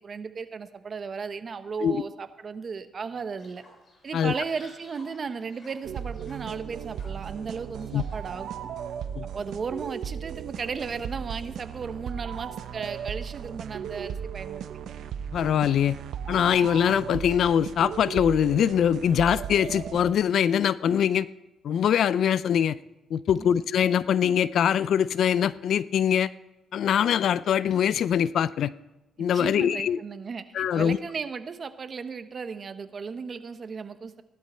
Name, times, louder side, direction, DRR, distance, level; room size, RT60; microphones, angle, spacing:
voice 1, 0.0-3.6 4.0-8.7 9.3-14.7 23.3-23.5 29.2-34.2, right 5 dB, 45° right, 10 dB, 1.0 m, -35 dB
Fowl, 3.4-8.4, left 2 dB, 45° left, 3.8 m, -53 dB
sound 1, 5.8-20.1, right 8 dB, 75° right, 0.8 m, -36 dB
voice 2, 15.3-16.0 16.3-21.3 21.6-22.8 23.1-26.3 26.7-28.7 29.2-30.0 30.5-31.0, left 9 dB, 65° left, 18 dB, 0.4 m, -23 dB
16.5 x 12.0 x 4.4 m, 0.97 s
cardioid pair, 90°, 0 cm